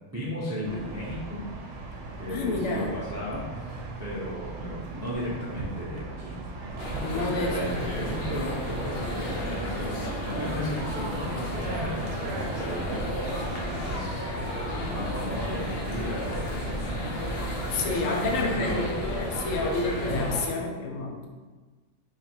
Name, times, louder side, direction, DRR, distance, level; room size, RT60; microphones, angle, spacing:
voice 1, 0.1-1.4 2.2-6.4 7.1-14.3 14.9-16.8 17.8-19.0, equal, 25° right, -7 dB, 0.3 m, -35 dB
City Ambience Sidewalk Group passes by, 0.7-20.3, right 2 dB, 70° right, 0.9 m, -37 dB
voice 2, 2.3-3.0 7.0-8.1 17.7-21.3, left 3 dB, 85° left, 2 dB, 1.0 m, -30 dB
sound 1, 6.8-20.5, left 1 dB, 60° left, 0.8 m, -33 dB
3.2 x 2.5 x 4.2 m, 1.3 s
omnidirectional pair, 1.3 m